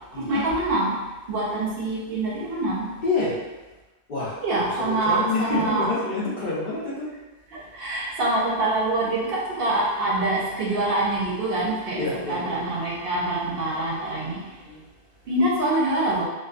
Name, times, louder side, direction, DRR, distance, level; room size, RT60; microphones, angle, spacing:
voice 1, 0.1-1.0 1.3-2.9 4.4-5.9 7.5-14.5 15.3-16.3, right 2 dB, 65° right, -4 dB, 0.8 m, -25 dB
voice 2, 3.0-3.4 4.1-4.4 4.8-7.1 10.0-10.3 11.9-12.6 13.7-13.9 14.6-14.8, left 3 dB, 50° left, -7 dB, 0.8 m, -28 dB
2.5 x 2.4 x 2.4 m, 1.2 s
omnidirectional pair, 1.1 m